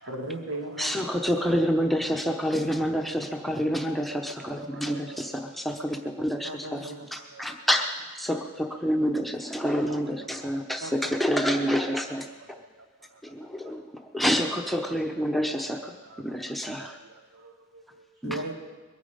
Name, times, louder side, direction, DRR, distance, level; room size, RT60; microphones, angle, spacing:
voice 1, 0.1-0.9 6.4-7.2 10.8-10.9 18.2-18.5, right 1 dB, 85° right, 2 dB, 2.1 m, -35 dB
voice 2, 0.8-12.3 13.2-13.8 14.1-16.0 16.2-17.0 18.2-18.4, equal, ahead, 3 dB, 0.8 m, -28 dB
voice 3, 4.4-5.3 7.2-7.4 9.9-10.4 13.1-13.2 16.0-16.5 16.8-18.0, right 4 dB, 65° right, 4 dB, 1.0 m, -49 dB
22.0 x 9.4 x 5.2 m, 1.3 s
head